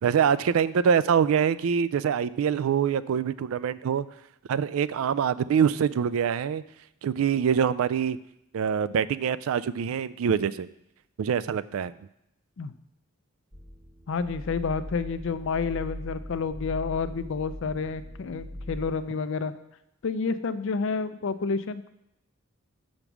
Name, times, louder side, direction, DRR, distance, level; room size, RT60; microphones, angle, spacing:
voice 1, 0.0-4.1 4.5-6.6 7.0-8.2 8.5-10.7 11.2-11.9, right 7 dB, 75° right, 17 dB, 0.3 m, -24 dB
sound 1, 13.5-18.9, left 1 dB, 30° right, 1.1 m, -40 dB
voice 2, 14.1-19.5 20.0-21.9, left 5 dB, 60° left, 13 dB, 0.4 m, -29 dB
7.0 x 5.2 x 6.0 m, 0.82 s
head